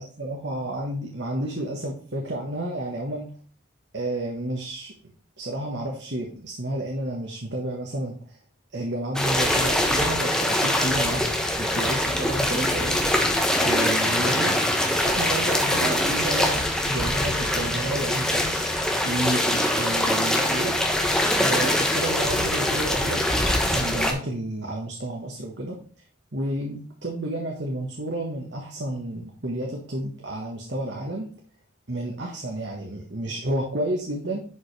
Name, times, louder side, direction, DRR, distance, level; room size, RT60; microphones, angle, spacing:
voice 1, 0.0-3.3 3.9-4.9 5.4-8.4 8.7-11.2 11.6-13.1 13.6-14.6 15.0-18.7 19.0-20.8 21.4-25.8 26.3-31.3 31.9-34.4, right 1 dB, 65° right, 0 dB, 1.4 m, -31 dB
sound 1, 9.2-24.1, left 1 dB, 5° left, 1.1 m, -23 dB
11.0 x 5.4 x 3.3 m, 0.42 s
head